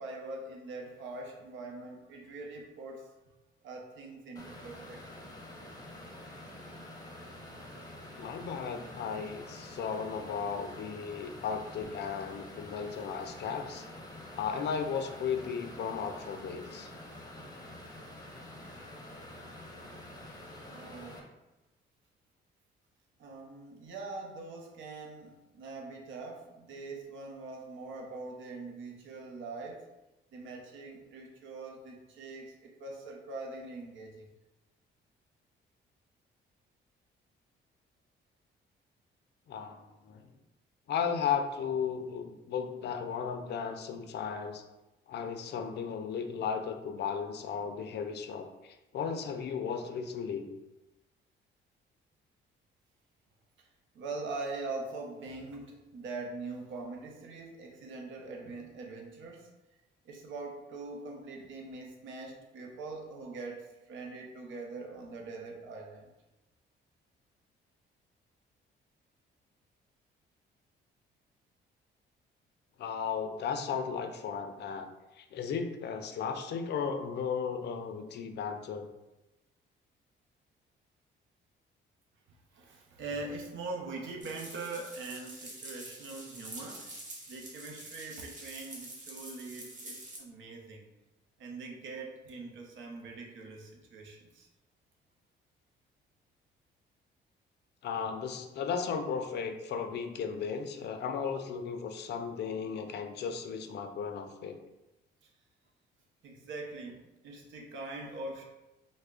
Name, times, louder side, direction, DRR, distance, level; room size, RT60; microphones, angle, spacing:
voice 1, 0.0-3.1 3.6-5.0 20.7-21.3 23.2-29.9 30.3-34.3 53.9-59.5 60.0-66.1 82.5-87.0 87.3-90.9 91.4-94.5 105.2-105.3 106.2-108.4, right 3 dB, 75° right, 1 dB, 0.6 m, -43 dB
sound 1, 4.4-21.2, left 1 dB, 20° left, 0.7 m, -47 dB
voice 2, 8.2-13.9 14.3-16.9 19.7-19.9 39.5-40.3 40.9-44.6 45.1-50.5 72.8-74.9 75.1-78.9 97.8-104.6, left 6 dB, 60° left, 6 dB, 0.4 m, -35 dB
sound 2, 84.2-90.2, right 1 dB, 40° right, 1.0 m, -46 dB
3.3 x 2.1 x 3.6 m, 0.99 s
cardioid pair, 90°, 20 cm